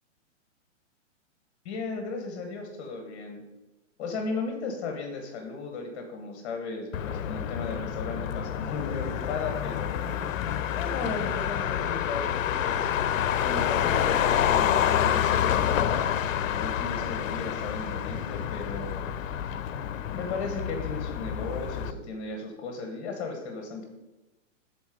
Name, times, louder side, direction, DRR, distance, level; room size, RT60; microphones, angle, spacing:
voice 1, 1.6-3.4 4.0-10.0 10.8-12.9 13.4-19.1 20.1-23.9, left 3 dB, 30° left, 4 dB, 0.9 m, -35 dB
Motor vehicle (road), 6.9-21.9, left 10 dB, 85° left, 0.5 m, -28 dB
7.3 x 4.1 x 4.8 m, 1.0 s
hypercardioid pair, 145°, 38 cm